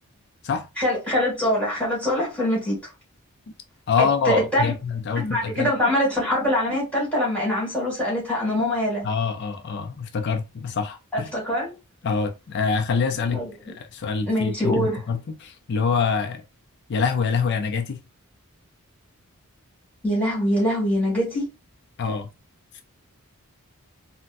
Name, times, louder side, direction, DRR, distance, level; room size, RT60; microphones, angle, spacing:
voice 1, 0.8-2.8 4.0-4.7 5.1-9.1 11.1-11.7 13.3-13.7 14.3-15.0 20.0-21.5, equal, 5° left, 1.9 m, -23 dB
voice 2, 3.9-5.7 9.0-11.3 12.0-16.4 16.9-18.0 22.0-22.3 22.7-22.8, left 5 dB, 50° left, 0.4 m, -25 dB
4.0 x 2.1 x 2.5 m
head